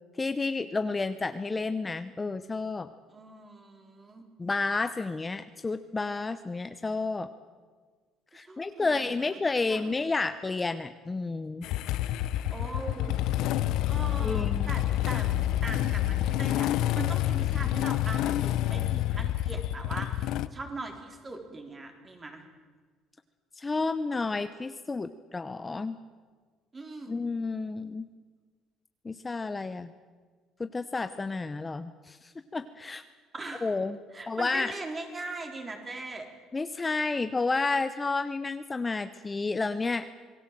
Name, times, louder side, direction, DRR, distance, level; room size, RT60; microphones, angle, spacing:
voice 1, 0.2-2.9 4.4-7.3 8.3-11.7 14.2-14.7 23.6-26.0 27.1-28.1 29.0-29.9 30.6-33.0 33.6-34.0 34.3-34.7 36.5-40.1, left 3 dB, 20° left, 10 dB, 0.9 m, -31 dB
voice 2, 3.1-4.2 8.3-9.1 9.6-9.9 12.5-13.2 13.5-15.3 15.6-22.4 26.7-27.2 33.3-33.8 34.1-36.3, right 2 dB, 25° right, 3 dB, 4.4 m, -40 dB
Motorcycle / Engine starting, 11.6-20.5, left 13 dB, 75° left, 0.8 m, -28 dB
27.0 x 19.5 x 7.7 m, 1.5 s
cardioid pair, 120°, 0 cm